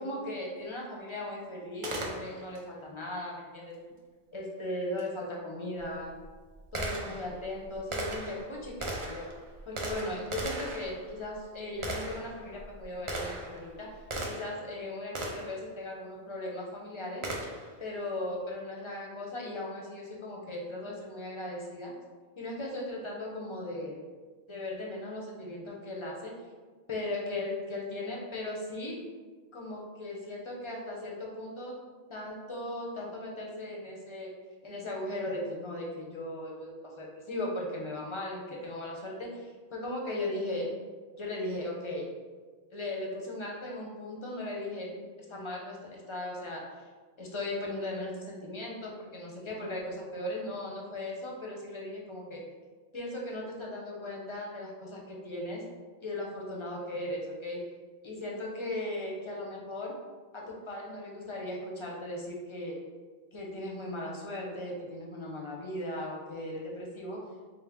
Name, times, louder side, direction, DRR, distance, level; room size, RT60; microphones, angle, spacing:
voice 1, 0.0-3.8 4.3-6.1 6.7-9.3 9.7-13.9 14.2-17.2 17.8-21.9 22.4-24.0 24.5-26.3 26.9-29.0 29.5-31.8 32.1-34.3 34.6-40.7 41.2-42.1 42.7-44.9 45.3-46.6 47.2-52.4 52.9-55.6 56.0-57.6 58.0-59.9 60.3-62.8 63.3-67.2, left 1 dB, 35° left, -2 dB, 0.6 m, -37 dB
Gunshot gunfire, 1.8-2.6 5.0-5.1 5.8-14.7 15.1-15.6 17.2-17.8, right 1 dB, 50° right, 0.4 m, -38 dB
4.3 x 2.1 x 3.4 m, 1.4 s
omnidirectional pair, 1.1 m